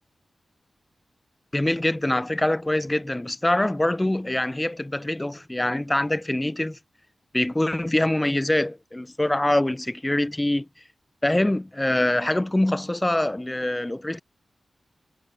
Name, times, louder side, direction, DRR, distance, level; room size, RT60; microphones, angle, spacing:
voice 1, 1.5-6.8 7.3-10.7 11.2-14.2, left 1 dB, 15° left, 4.4 m, -24 dB
wide cardioid pair, 110°, 0 cm